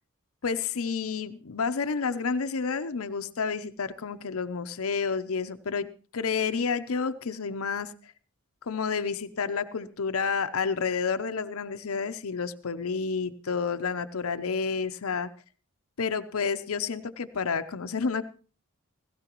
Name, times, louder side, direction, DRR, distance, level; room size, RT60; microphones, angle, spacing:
voice 1, 0.4-7.9 8.7-15.3 16.0-18.2, left 5 dB, 80° left, 10 dB, 0.7 m, -30 dB
16.5 x 16.0 x 3.0 m, 0.39 s
head